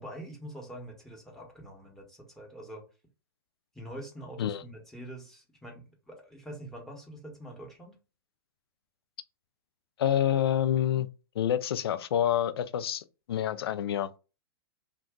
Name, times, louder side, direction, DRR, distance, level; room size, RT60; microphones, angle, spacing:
voice 1, 0.0-2.8 3.7-8.0, right 1 dB, 5° left, 1.1 m, -45 dB
voice 2, 10.0-11.1 11.4-14.1, left 10 dB, 75° left, 0.4 m, -27 dB
2.5 x 2.3 x 3.6 m
hypercardioid pair, 115°, 13 cm